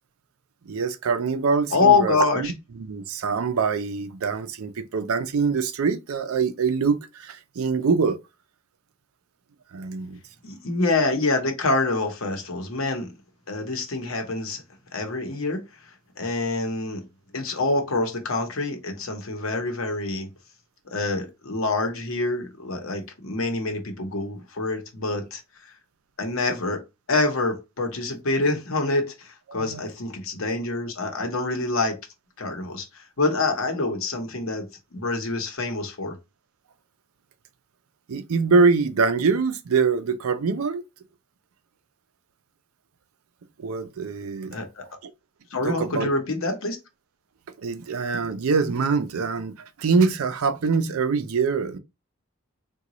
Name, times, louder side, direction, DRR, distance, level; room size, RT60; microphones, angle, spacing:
voice 1, 0.7-2.5 2.9-8.2 9.7-10.2 29.5-29.8 38.1-40.8 43.6-44.6 45.0-45.1 45.6-46.1 47.6-51.8, right 5 dB, 80° right, 0.5 m, -24 dB
voice 2, 1.7-2.5 10.4-13.1 13.5-14.6 14.9-15.6 16.2-17.0 17.3-20.3 20.9-25.7 26.2-26.8 27.1-31.9 32.4-34.7 34.9-36.2 44.5-44.8 45.5-46.8, left 3 dB, 70° left, 0.9 m, -26 dB
3.8 x 2.3 x 2.9 m
head